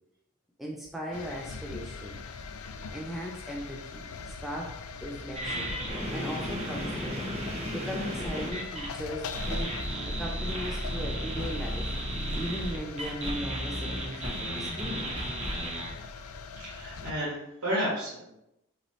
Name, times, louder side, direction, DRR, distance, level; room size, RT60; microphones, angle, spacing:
voice 1, 0.6-2.2 2.9-7.3 7.7-9.7 10.0-15.1, equal, ahead, -2 dB, 0.4 m, -38 dB
sound 1, 1.1-17.1, left 4 dB, 80° left, 0.4 m, -42 dB
sound 2, 5.3-8.9 9.3-15.9, equal, 30° right, 0.9 m, -34 dB
voice 2, 16.6-18.3, equal, 90° right, -7 dB, 1.7 m, -32 dB
5.3 x 3.1 x 3.0 m, 0.84 s
head